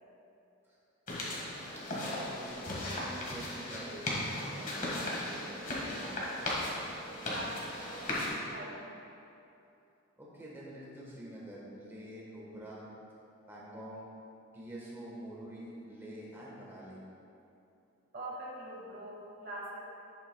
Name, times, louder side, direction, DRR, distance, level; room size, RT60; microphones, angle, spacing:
sound 1, 1.1-8.3, left 1 dB, 40° left, 1.6 m, -37 dB
voice 1, 1.2-1.5 1.9-2.6 2.9-6.2 10.2-12.9 13.5-14.1 14.5-17.0, right 1 dB, 10° right, -6 dB, 1.2 m, -46 dB
voice 2, 7.1-8.9 18.1-19.8, right 1 dB, 45° right, -3 dB, 1.2 m, -43 dB
10.5 x 8.5 x 2.2 m, 2.7 s
head